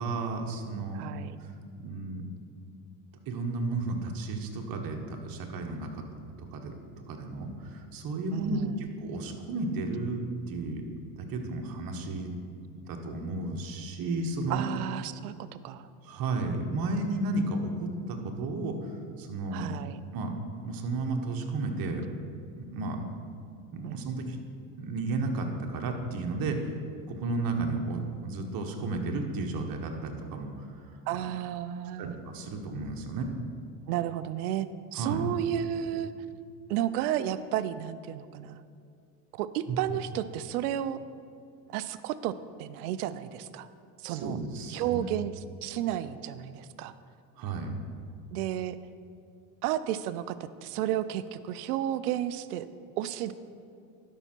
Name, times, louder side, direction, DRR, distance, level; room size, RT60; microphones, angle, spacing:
voice 1, 0.0-1.1 1.4-1.5 1.8-2.2 3.3-6.7 7.1-10.8 11.2-12.3 12.9-14.6 16.0-19.7 20.1-20.3 20.6-22.1 22.5-23.1 23.7-24.4 24.8-26.7 27.1-30.9 32.0-33.3 34.9-35.3 39.7-39.8 44.1-45.0 47.4-47.7, right 3 dB, 50° right, 3 dB, 1.3 m, -33 dB
voice 2, 0.9-1.4 8.3-8.9 14.5-15.9 19.5-20.0 23.8-24.2 31.1-32.2 33.9-34.7 34.9-36.1 36.7-38.6 39.3-41.0 41.7-43.7 44.0-44.4 44.7-46.9 48.3-48.8 49.6-52.7 53.0-53.3, right 11 dB, 85° right, 14 dB, 0.5 m, -32 dB
12.0 x 5.6 x 4.5 m, 2.4 s
supercardioid pair, 90°, 44 cm